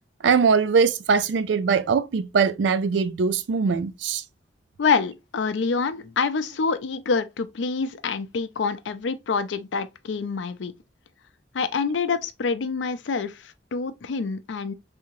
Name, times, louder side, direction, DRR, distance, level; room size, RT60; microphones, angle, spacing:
voice 1, 0.2-4.2, right 5 dB, 80° right, 0.4 m, -21 dB
voice 2, 4.8-10.7 11.5-14.7, left 5 dB, 85° left, 0.5 m, -26 dB
3.4 x 2.8 x 2.9 m
head